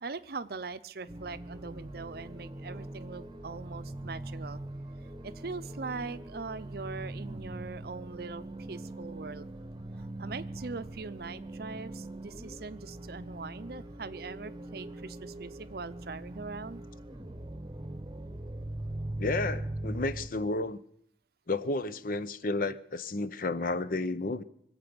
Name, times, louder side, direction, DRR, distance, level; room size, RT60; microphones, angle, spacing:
voice 1, 0.0-4.6 5.2-9.5 10.2-16.8, right 4 dB, 55° right, 0.6 m, -41 dB
sound 1, 1.1-20.3, right 1 dB, 25° right, 0.9 m, -41 dB
voice 2, 19.2-20.8 21.5-24.4, left 2 dB, 50° left, 0.7 m, -32 dB
24.0 x 8.1 x 6.9 m
head